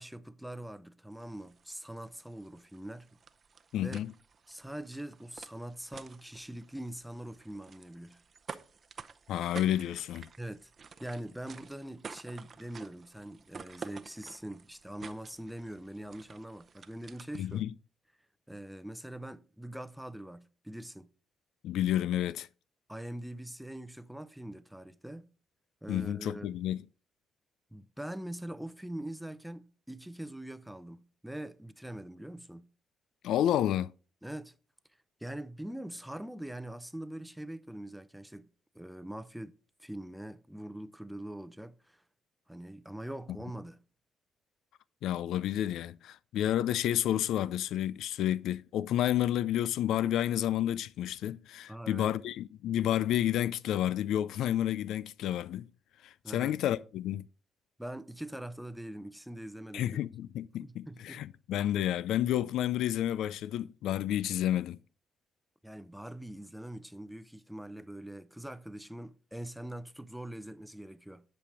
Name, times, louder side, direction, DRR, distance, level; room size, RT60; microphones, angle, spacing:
voice 1, 0.0-3.1 3.8-4.0 4.5-8.2 10.4-10.7 11.0-17.6 18.5-21.1 22.9-25.3 25.8-26.5 27.7-32.7 34.2-34.5 35.2-38.5 38.7-39.5 39.8-42.0 42.5-43.8 51.7-52.1 56.2-56.6 57.8-60.0 60.6-61.3 65.6-71.2, right 1 dB, 5° right, 0.6 m, -43 dB
sound 1, 1.1-17.6, right 5 dB, 45° right, 0.7 m, -51 dB
voice 2, 3.7-4.1 9.3-10.3 17.4-17.7 21.6-22.5 25.9-26.8 33.2-33.9 45.0-55.7 56.0-57.2 59.7-64.8, left 12 dB, 80° left, 0.3 m, -30 dB
10.0 x 5.2 x 4.6 m
cardioid pair, 90°, 0 cm